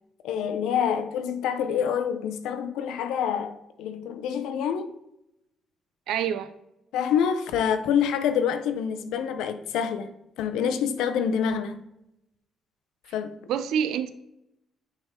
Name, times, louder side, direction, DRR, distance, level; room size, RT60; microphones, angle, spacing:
voice 1, 0.2-4.9 6.9-10.1 10.4-11.8 13.1-13.4, left 8 dB, 90° left, 0.6 m, -26 dB
voice 2, 6.1-6.5 13.5-14.1, right 8 dB, 85° right, 0.4 m, -26 dB
6.4 x 3.6 x 4.3 m
cardioid pair, 90°, 0 cm